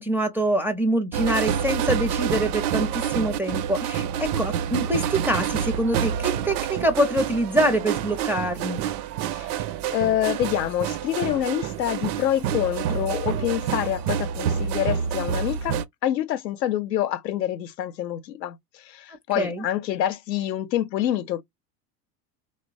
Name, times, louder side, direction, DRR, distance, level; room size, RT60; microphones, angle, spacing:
voice 1, 0.0-8.8 19.4-19.6, right 1 dB, 5° right, 0.4 m, -25 dB
sound 1, 1.1-15.8, right 9 dB, 65° right, 0.6 m, -28 dB
voice 2, 9.3-9.6 9.9-21.4, left 12 dB, 85° left, 0.7 m, -27 dB
3.1 x 2.0 x 2.4 m
hypercardioid pair, 85°, 49 cm